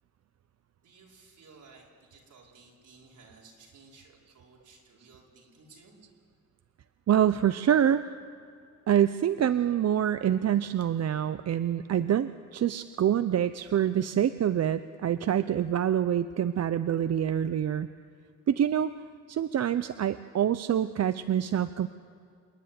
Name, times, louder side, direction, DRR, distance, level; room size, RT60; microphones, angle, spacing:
voice 1, 0.8-6.0, right 4 dB, 80° right, -2 dB, 4.8 m, -56 dB
voice 2, 7.1-8.0 8.9-17.9 18.5-18.9 19.3-21.9, right 10 dB, 60° right, 12 dB, 0.6 m, -26 dB
27.5 x 10.0 x 9.8 m, 2.4 s
wide cardioid pair, 130°, 30 cm